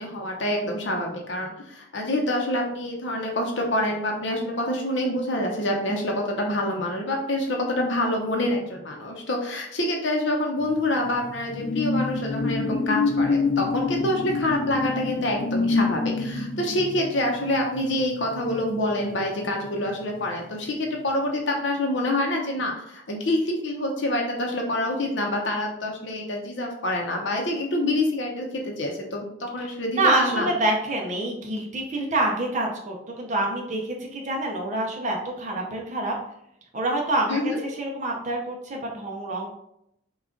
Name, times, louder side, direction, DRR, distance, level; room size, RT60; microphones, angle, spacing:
voice 1, 0.0-30.5 37.3-37.6, left 1 dB, 65° left, 1 dB, 0.8 m, -26 dB
sound 1, 10.7-19.7 20.0-20.3, left 3 dB, 45° left, 0.3 m, -27 dB
voice 2, 30.0-36.2 36.7-39.5, right 2 dB, 40° right, 0 dB, 0.7 m, -26 dB
5.9 x 2.4 x 3.8 m, 0.76 s
head